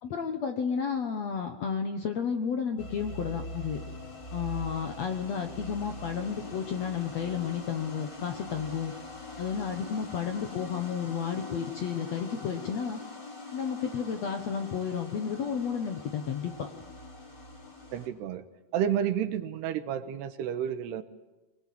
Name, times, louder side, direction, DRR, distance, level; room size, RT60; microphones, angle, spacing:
voice 1, 0.0-3.8 4.3-8.9 9.4-13.0 13.5-16.5, left 7 dB, 65° left, 6 dB, 1.7 m, -32 dB
sound 1, 2.8-18.1, left 2 dB, 30° left, 3.2 m, -43 dB
voice 2, 17.9-18.4 18.7-21.0, right 9 dB, 85° right, 10 dB, 3.3 m, -30 dB
24.0 x 21.5 x 8.7 m, 1.1 s
omnidirectional pair, 4.7 m